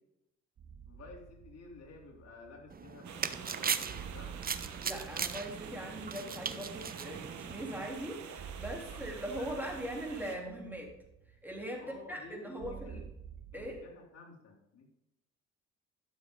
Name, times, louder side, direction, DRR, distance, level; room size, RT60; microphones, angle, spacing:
sound 1, 0.6-13.8, right 7 dB, 50° right, 1.5 m, -51 dB
voice 1, 0.9-4.4 8.8-9.7 11.8-13.0 13.5-14.9, left 3 dB, 55° left, 0 dB, 3.3 m, -52 dB
sound 2, 2.7-7.9, right 6 dB, 30° right, 0.7 m, -38 dB
sound 3, 3.0-10.4, right 7 dB, 70° right, 1.4 m, -48 dB
voice 2, 4.8-10.9 11.4-11.8 12.1-13.0 13.5-13.8, right 1 dB, 5° right, 0 dB, 3.2 m, -41 dB
12.5 x 7.3 x 3.8 m, 0.87 s
cardioid pair, 90°, 30 cm